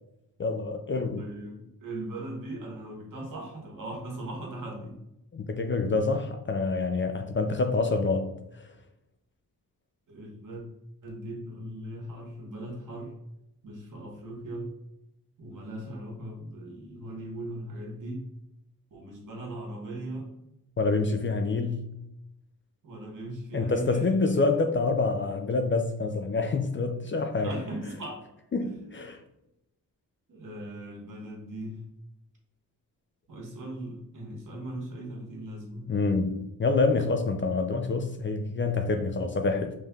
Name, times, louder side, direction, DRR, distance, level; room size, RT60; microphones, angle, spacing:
voice 1, 0.4-1.3 5.3-8.3 20.8-21.9 23.5-27.6 28.5-29.2 35.9-39.7, left 3 dB, 35° left, 0.4 m, -27 dB
voice 2, 1.2-5.0 10.1-10.6 11.0-13.1 13.6-14.7 15.4-18.3 18.9-20.3 22.8-24.2 24.5-24.6 27.4-28.2 28.6-28.8 30.3-31.8 33.3-35.9, right 1 dB, 60° right, 1.4 m, -39 dB
5.4 x 3.3 x 2.3 m
cardioid pair, 100°, 36 cm